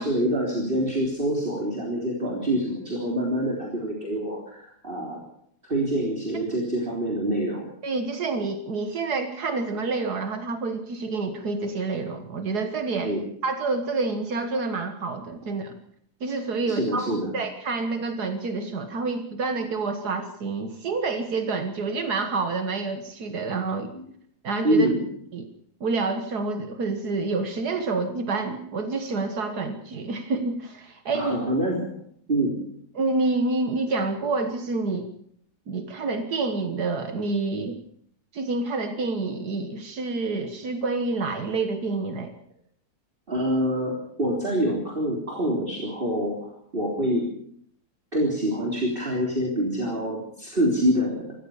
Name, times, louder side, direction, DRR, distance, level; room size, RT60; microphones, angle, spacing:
voice 1, 0.0-5.2 5.7-7.7 13.0-13.2 16.7-17.3 23.9-24.0 24.6-25.1 31.1-31.9 32.3-32.6 43.3-47.2 48.1-51.2, equal, 35° right, -2 dB, 3.9 m, -26 dB
voice 2, 7.8-13.1 13.4-15.7 16.2-23.9 24.4-24.9 25.3-25.5 25.8-31.3 33.0-35.1 35.7-37.8 38.3-42.3, right 3 dB, 75° right, 7 dB, 2.0 m, -28 dB
26.0 x 14.0 x 7.1 m, 0.68 s
omnidirectional pair, 1.7 m